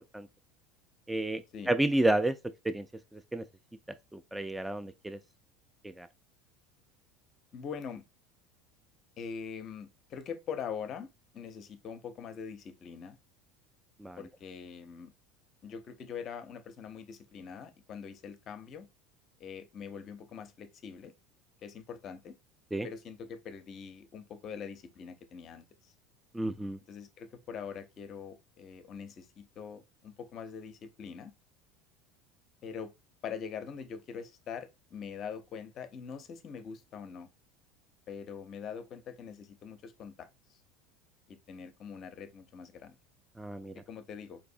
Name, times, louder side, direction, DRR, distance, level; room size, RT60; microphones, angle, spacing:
voice 1, 1.1-1.4 1.7-2.3 2.7-2.8 3.1-3.4 4.1-5.2 6.0-6.1 14.0-14.2 22.7-22.9 26.3-26.8 43.4-43.7, right 1 dB, 5° right, 0.3 m, -30 dB
voice 2, 7.5-8.0 9.2-13.2 14.2-15.1 15.6-18.9 19.4-21.1 21.6-22.3 22.8-25.9 26.9-31.3 32.6-32.9 33.2-37.3 38.1-40.6 41.3-43.0 43.9-44.4, left 6 dB, 45° left, 0.5 m, -43 dB
4.0 x 2.6 x 2.5 m
hypercardioid pair, 75°, 0 cm